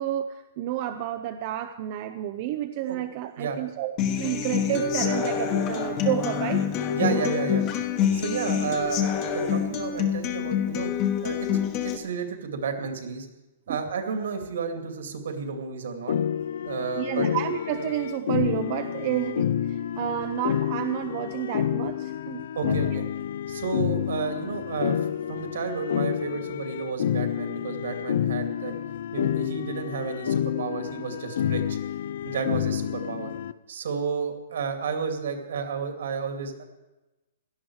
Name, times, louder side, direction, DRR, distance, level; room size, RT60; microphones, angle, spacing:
voice 1, 0.0-6.7 7.0-7.2 13.7-13.8 16.9-22.8, right 12 dB, 30° right, 8 dB, 0.5 m, -30 dB
Human voice / Acoustic guitar, 4.0-12.0, left 8 dB, 25° left, 1.2 m, -26 dB
voice 2, 6.9-7.6 8.1-10.9 11.2-13.3 13.7-16.1 16.6-17.3 22.5-23.0 23.5-25.0 25.3-28.7 29.1-31.8 32.2-33.3 33.7-36.6, right 5 dB, 70° right, 5 dB, 2.5 m, -32 dB
sound 1, 16.1-33.5, left 9 dB, 55° left, 0.5 m, -29 dB
17.0 x 12.5 x 4.8 m, 1.0 s
hypercardioid pair, 180°, 0 cm